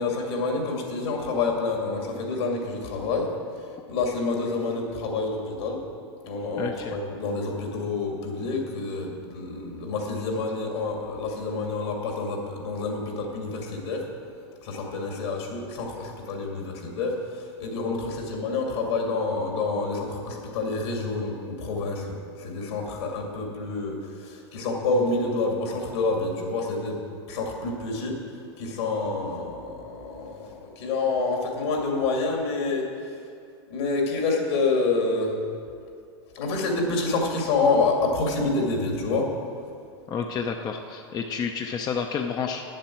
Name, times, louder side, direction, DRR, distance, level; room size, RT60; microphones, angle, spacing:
voice 1, 0.0-3.3 3.9-5.8 6.2-14.0 14.6-27.0 27.3-28.2 28.6-32.9 33.7-35.4 36.3-39.3, left 3 dB, 75° left, 1 dB, 2.4 m, -28 dB
voice 2, 6.6-7.0 40.1-42.6, left 6 dB, 30° left, 4 dB, 0.6 m, -30 dB
8.8 x 7.5 x 7.2 m, 2.3 s
hypercardioid pair, 115°, 14 cm